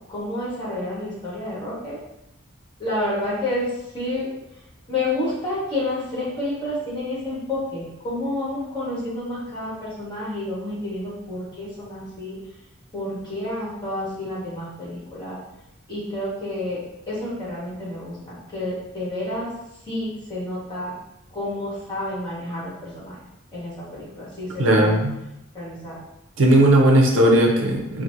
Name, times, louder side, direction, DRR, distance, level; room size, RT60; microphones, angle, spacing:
voice 1, 0.1-2.0 2.8-3.7 3.9-4.3 4.9-12.3 12.9-15.4 15.9-16.8 17.1-19.5 19.8-20.9 21.3-23.2 23.5-25.0 25.5-26.0, left 1 dB, 25° left, -8 dB, 1.4 m, -29 dB
voice 2, 24.6-25.2 26.4-28.0, right 1 dB, 75° right, 1 dB, 0.5 m, -17 dB
4.3 x 2.0 x 2.6 m, 0.88 s
head